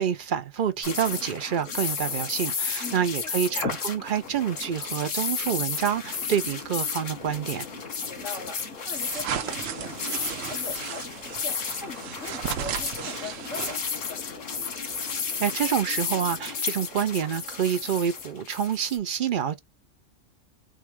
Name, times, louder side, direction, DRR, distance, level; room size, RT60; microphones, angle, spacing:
voice 1, 0.0-7.6 15.4-19.6, right 8 dB, 55° right, 0.6 m, -27 dB
sound 1, 0.8-19.0, left 5 dB, 90° left, 1.6 m, -33 dB
voice 2, 2.8-3.7 8.0-14.4, left 3 dB, 65° left, 1.6 m, -42 dB
sound 2, 6.1-18.1, left 5 dB, 35° left, 1.6 m, -48 dB
sound 3, 9.0-14.1, right 9 dB, 85° right, 1.1 m, -35 dB
3.7 x 2.3 x 4.5 m
omnidirectional pair, 1.3 m